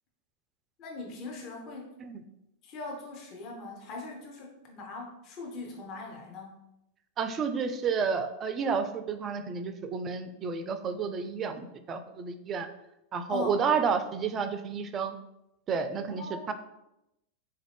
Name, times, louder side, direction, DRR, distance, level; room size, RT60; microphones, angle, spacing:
voice 1, 0.8-1.9 2.6-6.6 13.3-13.6 16.2-16.5, left 3 dB, 40° left, -1 dB, 0.7 m, -40 dB
voice 2, 7.2-12.7 13.1-15.2 15.7-16.5, right 6 dB, 25° right, 9 dB, 0.3 m, -31 dB
4.0 x 2.5 x 3.3 m, 0.88 s
figure-of-eight pair, 90°, 0 cm